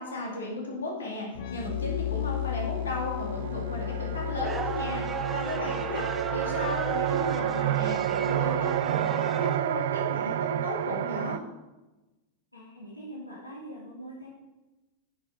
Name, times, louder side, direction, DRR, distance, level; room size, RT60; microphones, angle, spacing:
voice 1, 0.0-5.0 5.3-11.4, left 2 dB, 70° left, -2 dB, 2.5 m, -35 dB
sound 1, 1.3-8.9, left 11 dB, 50° left, 0.8 m, -36 dB
sound 2, 2.4-2.5 2.9-11.4, right 12 dB, 60° right, 0.3 m, -30 dB
sound 3, 4.4-9.6, right 4 dB, 20° right, 0.7 m, -36 dB
voice 2, 12.5-14.3, right 1 dB, 85° left, -6 dB, 2.1 m, -43 dB
8.8 x 6.3 x 5.1 m, 1.1 s
figure-of-eight pair, 90°, 0 cm